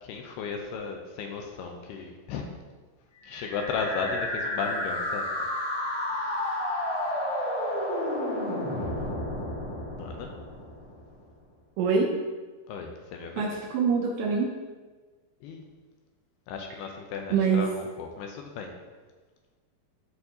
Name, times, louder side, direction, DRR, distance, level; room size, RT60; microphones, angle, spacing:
voice 1, 0.0-2.5 3.2-5.6 6.2-6.4 10.0-10.3 12.7-13.5 15.4-15.7 16.5-18.7, left 5 dB, 80° left, 3 dB, 2.4 m, -35 dB
sound 1, 3.2-11.2, left 1 dB, 55° left, 1.6 m, -31 dB
voice 2, 11.8-12.2 13.4-14.6 17.3-17.7, right 5 dB, 80° right, 0 dB, 2.3 m, -24 dB
13.0 x 4.5 x 2.8 m, 1.4 s
omnidirectional pair, 5.1 m